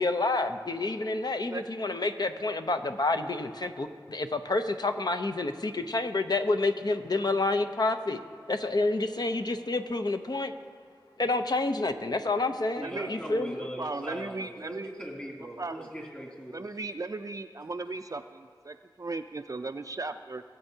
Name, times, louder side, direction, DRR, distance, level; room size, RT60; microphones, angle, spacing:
voice 1, 0.0-8.2 8.5-10.5 11.2-13.6, left 2 dB, 55° left, 8 dB, 0.6 m, -29 dB
voice 2, 12.8-16.7, equal, 20° left, -2 dB, 2.6 m, -40 dB
voice 3, 13.6-14.9 15.6-15.9 16.5-20.4, right 3 dB, 45° right, 7 dB, 0.4 m, -36 dB
19.0 x 7.9 x 2.8 m, 2.1 s
wide cardioid pair, 40°, 8 cm